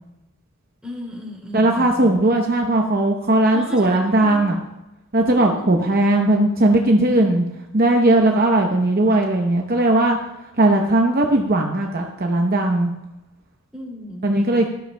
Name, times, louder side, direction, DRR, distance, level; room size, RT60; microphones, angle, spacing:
voice 1, 0.8-2.1 3.5-4.4 5.3-5.9 13.7-14.5, equal, 5° right, -3 dB, 2.6 m, -36 dB
voice 2, 1.5-4.6 5.1-7.4 7.7-10.2 10.6-12.9 14.2-14.7, right 1 dB, 45° right, 1 dB, 0.8 m, -18 dB
16.5 x 13.0 x 2.2 m, 0.93 s
head